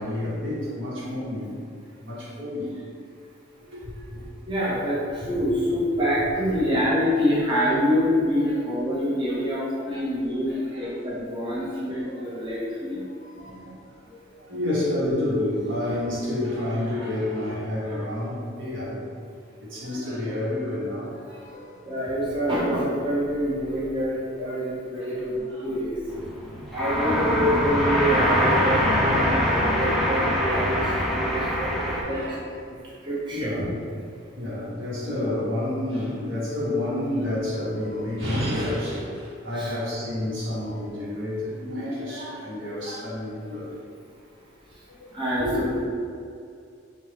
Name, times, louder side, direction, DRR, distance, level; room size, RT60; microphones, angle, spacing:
voice 1, 0.0-1.5 2.0-2.7 3.7-4.2 5.2-5.4 7.4-7.5 8.4-8.5 9.3-9.4 9.7-10.0 10.5-11.1 11.5-11.7 12.5-12.6 13.2-19.0 19.6-21.8 24.7-25.7 30.3-30.8 31.7-32.4 32.8-32.9 33.3-33.8 34.4-43.7 44.9-45.0 45.4-45.6, left 1 dB, 75° right, -7 dB, 1.3 m, -30 dB
voice 2, 4.5-13.0 21.8-26.0 26.4-32.2 33.0-33.5 39.6-39.7 45.1-45.8, equal, 25° right, -9 dB, 0.8 m, -26 dB
sound 1, 26.1-32.0, equal, ahead, 0.4 m, -23 dB
4.3 x 2.4 x 3.3 m, 2.4 s
head